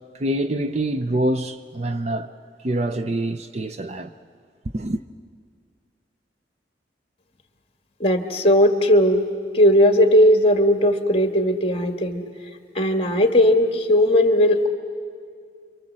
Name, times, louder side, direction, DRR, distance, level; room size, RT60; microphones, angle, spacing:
voice 1, 0.1-2.3 2.6-4.1 4.7-5.0, right 1 dB, 40° right, 0.6 m, -25 dB
voice 2, 8.0-9.3 9.5-12.2 12.7-14.7, equal, 35° left, 1.7 m, -17 dB
29.0 x 24.0 x 7.5 m
head